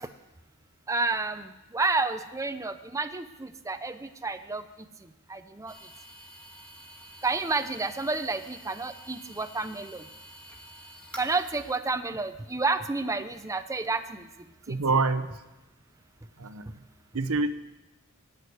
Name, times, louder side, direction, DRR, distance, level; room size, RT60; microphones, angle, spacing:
voice 1, 0.9-4.6 5.3-5.7 7.2-10.0 11.2-14.2 14.7-14.8, right 3 dB, 15° right, 9 dB, 0.5 m, -30 dB
sound 1, 5.7-11.8, equal, 5° left, 1.5 m, -48 dB
voice 2, 14.7-15.4 16.4-16.7 17.1-17.5, right 3 dB, 80° right, 11 dB, 0.8 m, -26 dB
12.5 x 8.2 x 9.4 m, 1.0 s
head